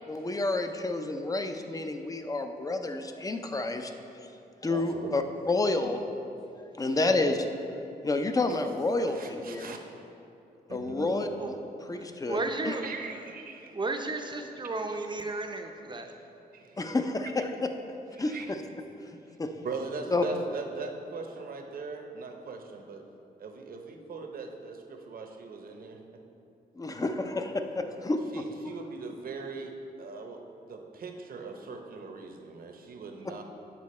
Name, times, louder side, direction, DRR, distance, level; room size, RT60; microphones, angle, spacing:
voice 1, 0.1-4.0 4.6-6.0 6.6-7.8 8.0-9.7 10.7-11.5 11.9-12.8 16.8-17.5 18.2-18.6 19.1-19.5 20.1-20.2 26.8-28.4, left 2 dB, 20° left, 6 dB, 0.5 m, -30 dB
voice 2, 4.7-5.2 6.8-7.1 9.1-9.8 10.7-11.1 12.7-13.7 14.9-15.0 16.5-16.9 18.3-18.5 19.6-23.0 23.4-26.0 28.3-33.4, right 4 dB, 60° right, 4 dB, 0.8 m, -40 dB
voice 3, 11.8-13.1 13.7-16.1, right 3 dB, 30° right, 5 dB, 0.6 m, -34 dB
8.4 x 5.7 x 4.2 m, 2.7 s
cardioid pair, 110°, 17 cm